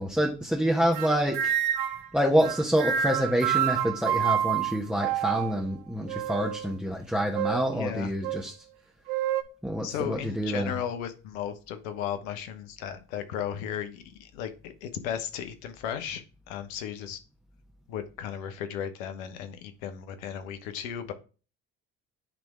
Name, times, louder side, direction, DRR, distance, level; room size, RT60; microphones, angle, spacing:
voice 1, 0.0-1.5 2.1-8.5 9.6-10.8, equal, ahead, 0 dB, 1.2 m, -27 dB
sound 1, 0.9-2.1 2.4-5.6 6.1-6.7 7.3-7.7 8.2-8.4 9.1-9.4, right 10 dB, 70° right, 0.9 m, -28 dB
voice 2, 7.7-8.1 9.8-17.2 17.9-21.1, left 9 dB, 75° left, 9 dB, 1.0 m, -35 dB
9.5 x 3.4 x 3.6 m, 0.34 s
hypercardioid pair, 60°, 41 cm